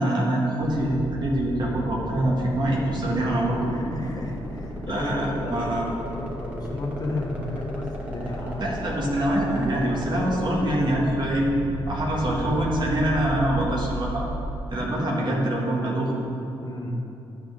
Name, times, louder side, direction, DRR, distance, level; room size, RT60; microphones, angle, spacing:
voice 1, 0.0-3.7 4.9-5.9 8.4-11.5 11.9-14.2 14.7-16.1, right 1 dB, 45° right, -3 dB, 2.1 m, -25 dB
sound 1, 0.7-14.6, right 1 dB, 15° right, 2.1 m, -34 dB
voice 2, 3.7-5.7 6.1-8.8 16.6-17.0, left 2 dB, 40° left, -1 dB, 1.5 m, -33 dB
12.5 x 5.6 x 3.7 m, 2.8 s
supercardioid pair, 50°, 10 cm